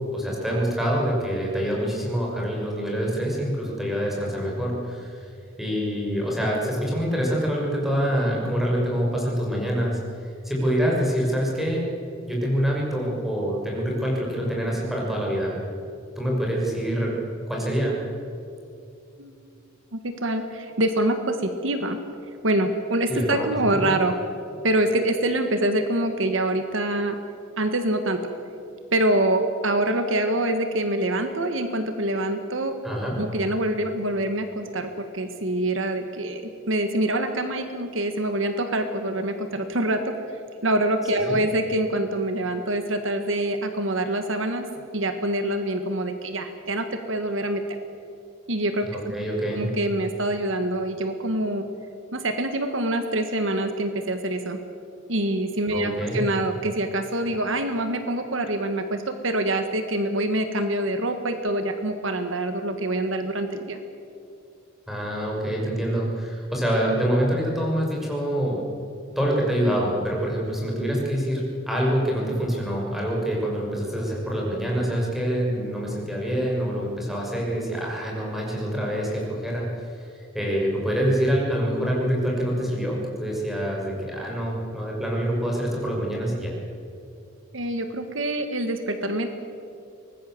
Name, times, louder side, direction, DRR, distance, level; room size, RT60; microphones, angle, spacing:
voice 1, 0.1-5.3 5.6-10.0 10.4-11.8 12.2-15.6 16.2-17.2 17.5-18.0 23.1-23.9 32.8-33.2 41.2-41.4 48.8-49.7 55.7-56.2 64.9-68.6 69.1-80.1 80.3-86.6, equal, ahead, -3 dB, 6.4 m, -26 dB
voice 2, 19.9-22.0 22.4-24.1 24.6-27.2 27.6-28.3 28.9-32.8 33.2-36.4 36.7-44.7 44.9-47.8 48.5-49.1 49.5-51.7 52.1-54.6 55.1-63.8 87.5-89.3, right 1 dB, 70° right, 7 dB, 1.7 m, -25 dB
24.0 x 20.0 x 7.8 m, 2.6 s
head